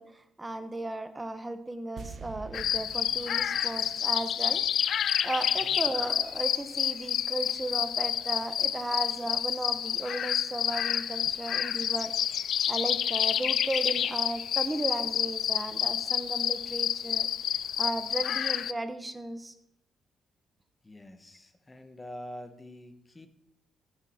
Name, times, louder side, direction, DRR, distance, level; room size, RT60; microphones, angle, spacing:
voice 1, 0.0-4.6 5.2-12.1 12.7-17.3 17.8-19.5, right 2 dB, 15° right, 10 dB, 1.2 m, -35 dB
sound 1, 2.0-5.2 5.4-5.5, right 5 dB, 55° right, 1.1 m, -47 dB
sound 2, 2.5-18.7, left 9 dB, 65° left, 0.4 m, -29 dB
voice 2, 20.8-23.3, left 1 dB, 20° left, 9 dB, 1.3 m, -45 dB
14.0 x 9.7 x 4.4 m, 0.76 s
cardioid pair, 105°, 0 cm